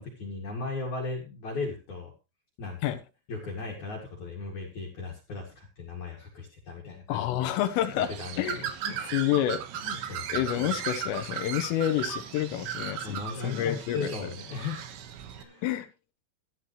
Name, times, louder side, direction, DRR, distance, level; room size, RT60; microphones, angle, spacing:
voice 1, 0.0-2.1 2.6-2.8 3.3-9.1 9.7-10.7 13.0-14.9 15.4-15.8, left 3 dB, 50° left, -1 dB, 2.8 m, -37 dB
voice 2, 7.1-8.1 8.4-8.7 9.1-9.6 10.3-14.1 15.6-15.9, left 12 dB, 85° left, 9 dB, 3.8 m, -28 dB
Bird, 8.0-15.4, right 10 dB, 75° right, 3.4 m, -37 dB
13.5 x 12.0 x 3.1 m, 0.28 s
omnidirectional pair, 5.7 m